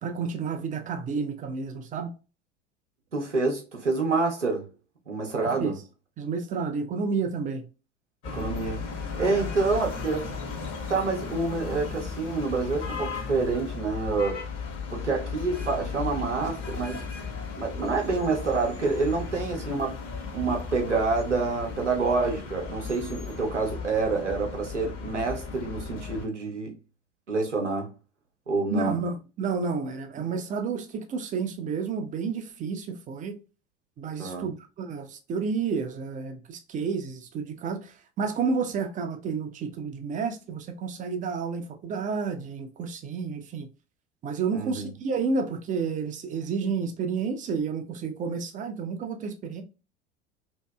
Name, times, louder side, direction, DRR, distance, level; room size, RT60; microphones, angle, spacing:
voice 1, 0.0-2.1 5.5-5.7 6.2-7.7 9.3-9.5 28.7-33.4 34.0-43.7 44.2-49.6, right 5 dB, 25° right, 0.5 m, -30 dB
voice 2, 3.1-4.7 5.1-5.7 8.2-8.8 9.2-10.3 10.9-14.4 14.9-17.0 17.6-20.0 20.3-26.7 27.3-27.9 28.5-28.9 34.2-34.5 44.5-44.9, right 4 dB, 85° right, 0.7 m, -27 dB
sound 1, 8.2-26.3, left 5 dB, 35° left, 1.1 m, -36 dB
2.7 x 2.6 x 2.2 m
figure-of-eight pair, 75°, 35 cm